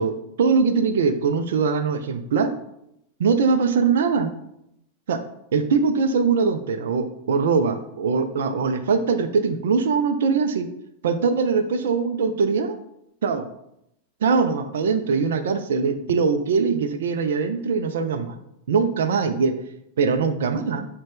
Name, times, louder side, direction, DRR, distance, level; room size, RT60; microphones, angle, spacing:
voice 1, 0.0-2.5 3.2-4.3 5.1-5.2 5.5-10.7 11.0-12.8 13.2-13.4 14.2-18.3 18.7-19.5 20.0-20.9, right 5 dB, 60° right, 9 dB, 0.3 m, -22 dB
6.2 x 2.1 x 3.4 m, 0.78 s
figure-of-eight pair, 90°, 0 cm